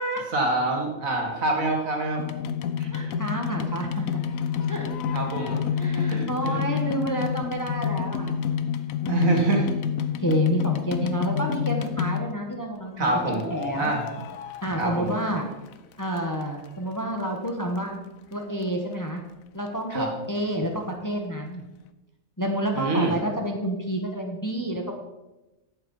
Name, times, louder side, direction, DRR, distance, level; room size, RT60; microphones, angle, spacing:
voice 1, 0.3-2.2 2.8-2.9 5.0-5.6 6.1-6.6 9.1-9.7 13.0-13.5 13.8-14.0 14.8-15.1 19.9-20.1 22.7-23.1, right 2 dB, 70° right, 2 dB, 2.4 m, -25 dB
sound 1, 2.2-12.5 13.3-15.4 15.7-16.7 17.2-17.3 17.5-17.6 17.8-17.9 18.3-18.4 18.6-18.7, left 8 dB, 75° left, 1.1 m, -29 dB
voice 2, 2.9-3.9 4.7-4.9 5.7-8.5 9.0-9.4 10.2-13.9 14.6-15.4 16.0-17.9 18.3-19.2 19.5-21.6 22.4-25.0, right 1 dB, 15° left, 2 dB, 1.3 m, -29 dB
11.0 x 8.1 x 5.5 m, 1.0 s
omnidirectional pair, 1.5 m